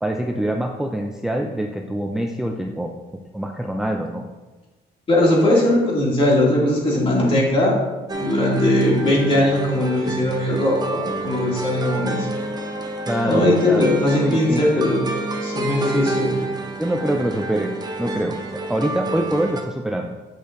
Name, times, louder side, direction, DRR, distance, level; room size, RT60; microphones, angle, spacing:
voice 1, 0.0-3.0 3.3-4.2 13.1-13.9 14.2-14.8 16.8-18.4 18.7-20.1, right 1 dB, 5° right, 2 dB, 0.4 m, -25 dB
voice 2, 5.1-7.8 8.1-12.3 13.3-15.0 15.4-16.3, left 1 dB, 30° left, -4 dB, 2.2 m, -19 dB
sound 1, 8.1-19.6, right 2 dB, 25° right, 0.8 m, -28 dB
8.3 x 6.3 x 2.5 m, 1.2 s
cardioid pair, 110°, 17 cm